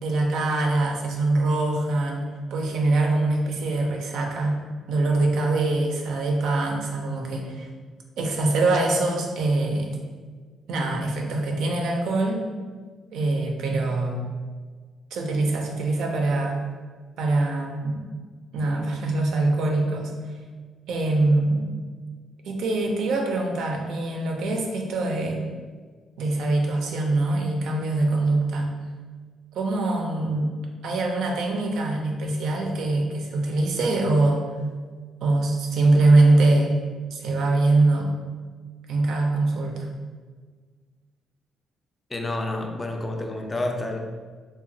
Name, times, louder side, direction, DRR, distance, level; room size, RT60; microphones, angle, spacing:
voice 1, 0.0-4.6 4.9-7.7 8.2-9.9 10.7-12.4 13.1-14.2 15.1-16.6 17.2-18.0 18.5-20.1 20.9-21.7 22.4-25.5 26.2-28.7 29.5-30.6 30.8-34.5 35.2-36.8 37.1-38.1 38.9-39.9, right 2 dB, 80° right, 2 dB, 0.4 m, -23 dB
voice 2, 42.1-44.0, left 2 dB, 25° left, 3 dB, 0.3 m, -29 dB
2.9 x 2.2 x 2.6 m, 1.5 s
cardioid pair, 90°, 0 cm